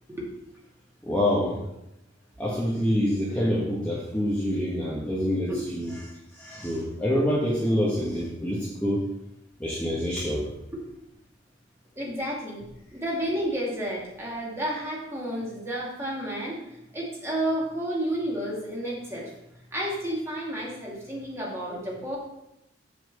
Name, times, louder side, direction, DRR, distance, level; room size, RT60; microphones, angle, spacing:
voice 1, 1.0-1.6 2.4-5.9 6.3-9.0 9.6-10.5, equal, 5° left, -7 dB, 1.4 m, -26 dB
voice 2, 12.0-12.6 12.9-16.6 16.9-19.3 19.7-22.2, equal, 15° right, -5 dB, 2.5 m, -31 dB
7.8 x 4.3 x 6.8 m, 0.84 s
head